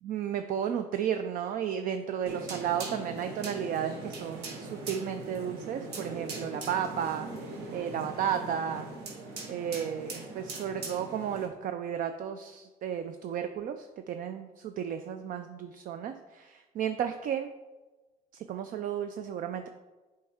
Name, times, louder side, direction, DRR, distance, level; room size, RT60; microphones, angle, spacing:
voice 1, 0.0-8.9 9.5-17.5 18.3-19.7, right 8 dB, 55° right, 8 dB, 0.4 m, -33 dB
sound 1, 2.3-11.5, right 2 dB, 75° right, 1.5 m, -40 dB
7.6 x 4.3 x 3.6 m, 1.2 s
cardioid pair, 110°, 17 cm